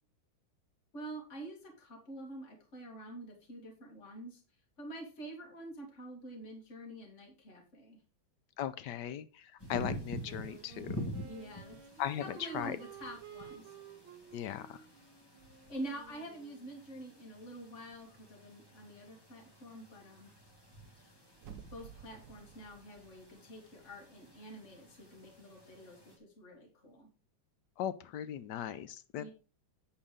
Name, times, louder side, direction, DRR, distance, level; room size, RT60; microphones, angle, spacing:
voice 1, 0.9-4.4 4.8-8.0 11.2-11.8 12.2-13.7 15.7-20.3 21.7-27.1 29.2-29.3, right 1 dB, 35° left, 1 dB, 2.5 m, -47 dB
voice 2, 8.6-11.0 12.0-12.2 12.5-12.7 14.3-14.8 27.8-29.3, left 10 dB, 70° left, 13 dB, 1.0 m, -38 dB
sound 1, 9.6-26.2, equal, 15° left, 1.4 m, -48 dB
Wind instrument woodwind instrument, 10.2-16.8, right 9 dB, 75° right, 1.7 m, -53 dB
sound 2, 21.4-24.3 24.6-24.7, right 8 dB, 60° right, 1.3 m, -54 dB
8.7 x 4.6 x 5.0 m, 0.35 s
omnidirectional pair, 2.3 m